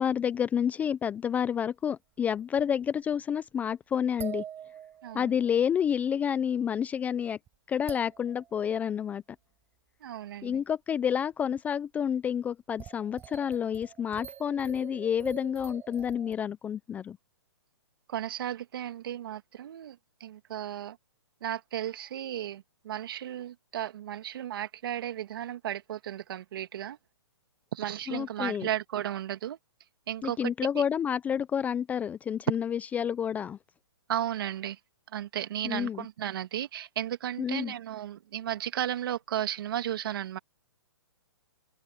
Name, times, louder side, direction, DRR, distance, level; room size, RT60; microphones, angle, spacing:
voice 1, 0.0-4.4 5.1-7.4 7.7-9.2 10.4-17.2 28.1-28.7 30.2-33.6 35.6-36.1 37.4-37.7, left 8 dB, 10° left, 0.4 m, -29 dB
sound 1, 1.6-1.7 2.3-3.1 4.2-5.6 6.9-7.0 7.5-7.6 7.9-8.5 10.5-10.6 11.6-11.7 12.8-16.3, right 9 dB, 15° right, 4.1 m, -45 dB
voice 2, 10.0-10.6 18.1-20.0 20.2-21.0 21.4-27.0 27.7-29.6 30.1-30.5 34.1-34.8 35.1-40.4, right 11 dB, 55° right, 2.0 m, -34 dB
open air
hypercardioid pair, 140°, 14 cm